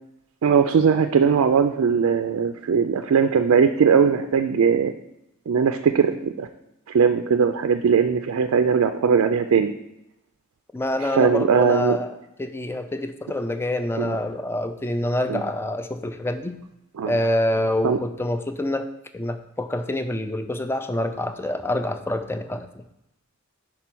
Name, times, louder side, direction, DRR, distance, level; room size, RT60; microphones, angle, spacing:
voice 1, 0.4-4.9 5.5-6.5 6.9-9.7 11.1-12.0 14.0-14.1 15.3-15.4 17.0-17.1 17.8-18.0, right 6 dB, 85° right, 7 dB, 0.4 m, -19 dB
voice 2, 10.7-16.6 17.1-18.9 19.1-22.8, left 1 dB, 10° left, 9 dB, 0.3 m, -26 dB
5.5 x 4.4 x 6.0 m, 0.86 s
head